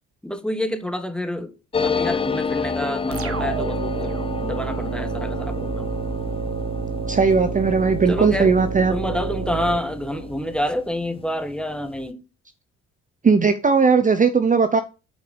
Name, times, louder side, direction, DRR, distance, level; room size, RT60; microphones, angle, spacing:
voice 1, 0.2-1.5 1.8-4.1 4.4-5.9 8.1-8.5 8.9-12.2, left 1 dB, 5° left, 1.4 m, -28 dB
sound 1, 1.7-10.9 11.2-11.3 11.5-12.1, left 5 dB, 20° left, 0.6 m, -30 dB
sound 2, 3.1-10.6, right 6 dB, 45° right, 1.3 m, -29 dB
voice 2, 7.1-8.9 13.2-14.8, right 5 dB, 25° right, 0.8 m, -18 dB
8.4 x 4.7 x 5.1 m
cardioid pair, 90°, 30 cm